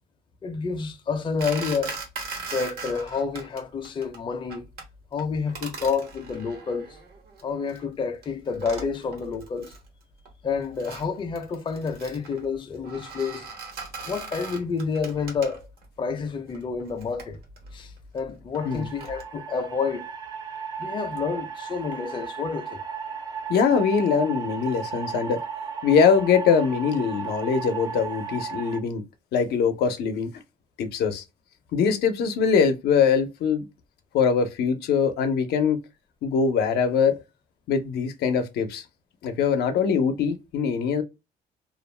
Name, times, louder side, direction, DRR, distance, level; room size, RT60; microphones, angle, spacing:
voice 1, 0.4-2.0 2.4-4.7 5.1-7.0 7.4-9.8 10.4-13.5 14.1-15.7 16.0-17.4 17.7-20.1 20.8-22.8, left 5 dB, 30° left, 0.5 m, -29 dB
sound 1, 1.4-3.6 3.9-4.2 4.5-4.9 5.2-7.8 8.2-8.3 8.5-9.9 10.3-15.9 16.5-19.3, right 4 dB, 80° right, 1.1 m, -39 dB
sound 2, 18.6-28.8, right 6 dB, 25° right, 0.4 m, -35 dB
voice 2, 23.5-25.4 25.8-29.0 29.3-30.3 30.8-31.2 31.7-33.6 34.1-35.8 36.2-37.2 37.7-38.8 39.2-41.0, left 6 dB, 85° left, 0.5 m, -22 dB
2.4 x 2.1 x 3.2 m
cardioid pair, 125°, 16 cm